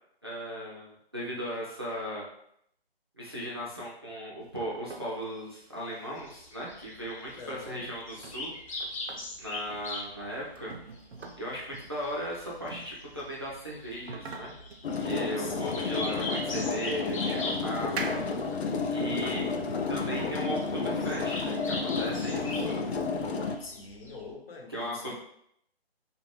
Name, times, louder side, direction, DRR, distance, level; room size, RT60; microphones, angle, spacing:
voice 1, 0.2-2.3 3.2-8.5 9.4-10.7 11.4-14.5 15.0-18.2 18.9-19.5 19.9-22.8 24.7-25.1, equal, 25° right, -6 dB, 0.3 m, -37 dB
sound 1, 4.4-20.6, right 4 dB, 85° right, 0.5 m, -46 dB
sound 2, 6.2-24.3, left 2 dB, 35° left, 0.6 m, -42 dB
voice 2, 7.4-7.8 15.4-16.2 18.8-19.6 23.6-25.2, left 3 dB, 65° left, -1 dB, 0.9 m, -45 dB
sound 3, 14.8-23.5, left 4 dB, 85° left, 0.5 m, -31 dB
2.5 x 2.2 x 3.0 m, 0.71 s
figure-of-eight pair, 155°, 31 cm